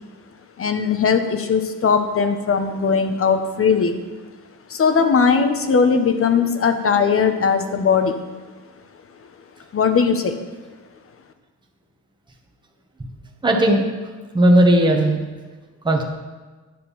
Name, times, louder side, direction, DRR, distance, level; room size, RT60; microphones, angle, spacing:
voice 1, 0.6-4.0 4.7-8.2 9.7-10.4, left 5 dB, 45° left, 7 dB, 1.2 m, -19 dB
voice 2, 13.4-13.8 14.3-15.2 15.8-16.0, right 1 dB, 15° right, 1 dB, 1.5 m, -15 dB
10.5 x 6.8 x 5.6 m, 1.3 s
cardioid pair, 90°, 30 cm